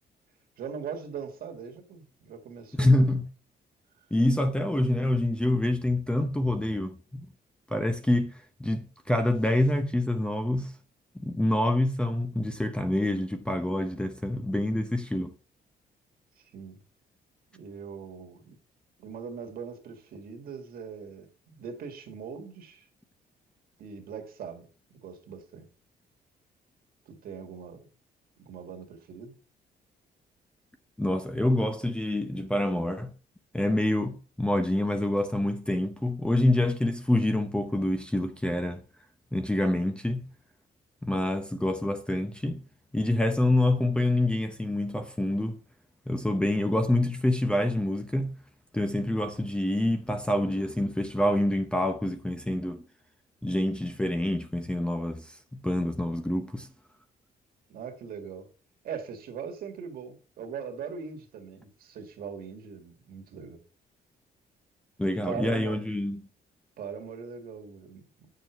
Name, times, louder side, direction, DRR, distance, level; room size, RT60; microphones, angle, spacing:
voice 1, 0.6-3.2 16.4-16.8 17.5-18.6 19.0-22.9 23.8-25.7 27.1-27.9 28.4-29.4 57.7-58.5 58.8-63.6 65.0-65.9 66.8-68.3, right 6 dB, 65° right, 2.0 m, -41 dB
voice 2, 2.8-3.2 4.1-7.3 7.7-8.3 8.6-10.7 11.1-15.3 31.0-33.1 33.5-38.8 39.3-40.2 41.0-42.6 42.9-45.6 46.1-48.3 48.7-52.9 53.4-56.7 65.0-66.2, left 1 dB, 5° left, 0.7 m, -26 dB
9.3 x 6.7 x 4.5 m
cardioid pair, 150°, 16 cm